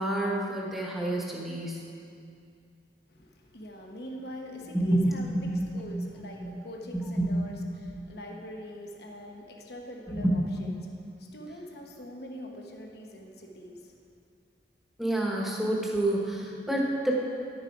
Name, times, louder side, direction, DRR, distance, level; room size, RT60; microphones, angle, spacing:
voice 1, 0.0-1.9 4.7-6.1 6.4-6.5 6.9-7.5 7.8-7.9 10.1-10.4 15.0-17.2, right 1 dB, ahead, -3 dB, 1.2 m, -28 dB
voice 2, 3.1-10.9 11.2-14.0, equal, 65° left, 2 dB, 1.0 m, -43 dB
10.5 x 7.4 x 4.8 m, 2.5 s
head